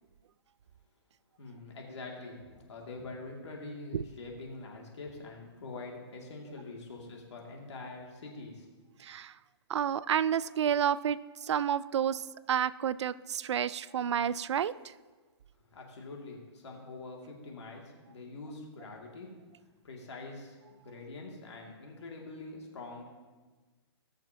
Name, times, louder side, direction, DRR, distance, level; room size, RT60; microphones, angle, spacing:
voice 1, 1.4-8.7 15.7-19.3 19.8-20.6 20.8-23.0, left 3 dB, 80° left, 0 dB, 2.4 m, -44 dB
voice 2, 9.0-9.3 9.7-14.7, right 9 dB, 85° right, 18 dB, 0.4 m, -30 dB
19.5 x 6.5 x 2.9 m, 1.3 s
hypercardioid pair, 150°, 14 cm